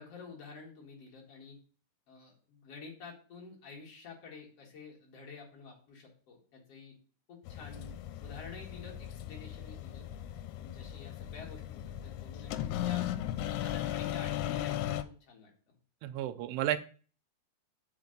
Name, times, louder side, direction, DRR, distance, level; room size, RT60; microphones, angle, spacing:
voice 1, 0.0-1.6 2.1-6.9 7.3-7.9 8.2-10.0 10.6-13.1 13.5-15.8, left 4 dB, 50° left, -1 dB, 2.3 m, -50 dB
sound 1, 7.5-15.0, left 12 dB, 90° left, 2.6 m, -37 dB
voice 2, 16.0-16.8, right 12 dB, 85° right, 12 dB, 2.6 m, -32 dB
5.3 x 5.1 x 6.5 m, 0.41 s
omnidirectional pair, 4.6 m